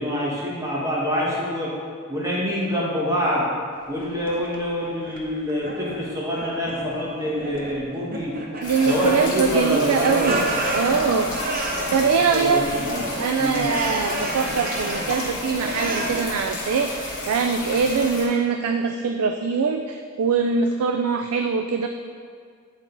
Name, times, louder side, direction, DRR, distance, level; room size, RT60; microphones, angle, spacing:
voice 1, 0.0-1.7 2.1-3.5 3.9-8.3 8.9-10.4 10.8-11.2 12.2-13.1 13.3-13.7, equal, 15° right, -6 dB, 1.5 m, -26 dB
sound 1, 3.7-4.6 5.0-6.0 6.3-6.9 7.2-7.8 8.1-9.5 9.8-12.1 12.4-15.2 15.6-16.2, right 1 dB, 40° right, 0.7 m, -30 dB
sound 2, 8.6-18.3, left 2 dB, 35° left, 1.9 m, -32 dB
voice 2, 8.6-11.4 11.9-12.7 13.2-21.9, right 5 dB, 80° right, 6 dB, 0.4 m, -22 dB
10.0 x 4.0 x 3.9 m, 2.1 s
head